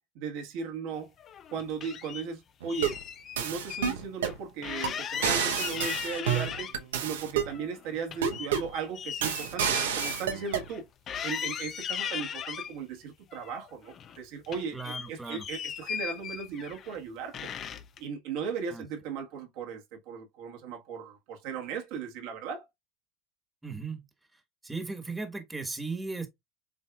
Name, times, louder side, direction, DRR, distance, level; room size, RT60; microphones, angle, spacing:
voice 1, 0.1-1.1 1.5-3.0 3.4-10.9 11.2-17.5 18.0-22.6, right 6 dB, 65° right, 1.6 m, -37 dB
sound 1, 1.2-2.2 2.7-3.9 4.2-4.3 4.6-7.0 7.4-10.8 11.1-12.7 13.3-14.2 14.4-17.0 17.3-18.0, left 8 dB, 40° left, 0.6 m, -37 dB
sound 2, 2.6-3.0 3.4-4.4 4.8-4.9 5.2-7.5 8.2-8.7 9.2-10.7, right 8 dB, 90° right, 0.9 m, -29 dB
voice 2, 14.7-15.4 18.7-18.8 23.6-24.0 24.6-26.3, right 3 dB, 10° right, 1.5 m, -36 dB
7.4 x 2.8 x 2.4 m
hypercardioid pair, 95°, 0 cm